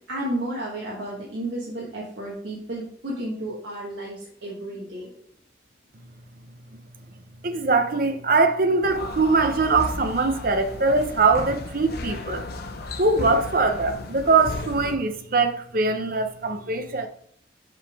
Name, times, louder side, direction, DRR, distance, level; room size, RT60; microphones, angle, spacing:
voice 1, 0.1-5.1, right 1 dB, 75° right, 1.2 m, -32 dB
voice 2, 7.4-12.5 13.0-17.1, right 3 dB, 50° right, 0.7 m, -22 dB
sound 1, 8.8-15.0, left 2 dB, 55° left, 0.7 m, -35 dB
5.5 x 5.1 x 3.4 m
head